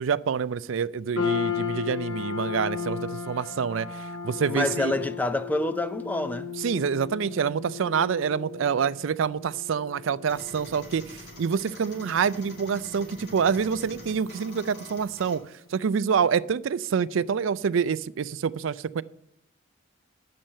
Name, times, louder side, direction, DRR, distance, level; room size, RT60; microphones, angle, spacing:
voice 1, 0.0-4.9 6.6-15.4 15.7-19.0, right 6 dB, 75° right, 0.4 m, -27 dB
sound 1, 1.2-15.6, left 7 dB, 85° left, 2.3 m, -36 dB
voice 2, 4.5-6.5, left 1 dB, 10° left, 0.4 m, -27 dB
sound 2, 10.2-15.4, left 1 dB, 50° left, 2.9 m, -46 dB
10.5 x 7.6 x 5.5 m
head